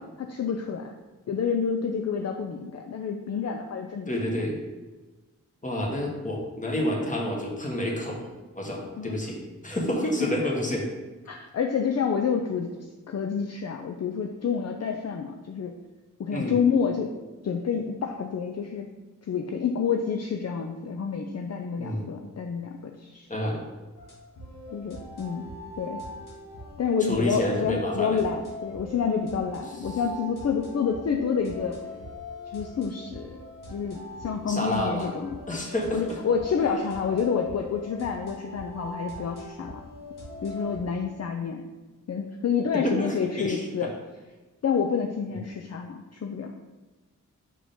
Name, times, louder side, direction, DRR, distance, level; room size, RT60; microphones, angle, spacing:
voice 1, 0.2-0.9 1.3-4.1 9.0-9.2 10.2-10.3 11.3-12.7 13.1-15.7 16.2-17.2 17.4-18.9 19.3-23.3 24.7-25.4 25.8-26.0 26.8-31.8 32.5-33.4 33.7-35.4 35.9-39.8 40.4-41.6 42.1-43.9 44.6-46.5, left 6 dB, 50° left, 3 dB, 0.5 m, -28 dB
voice 2, 4.1-4.6 5.6-8.2 8.6-10.8 16.3-16.5 21.8-22.1 23.3-23.6 27.1-28.2 34.5-35.1 35.5-36.1 42.7-43.6, left 1 dB, 25° left, -1 dB, 1.4 m, -29 dB
sound 1, 24.0-40.8, left 1 dB, 75° left, 1.9 m, -41 dB
5.4 x 4.9 x 3.6 m, 1.2 s
wide cardioid pair, 90°, 32 cm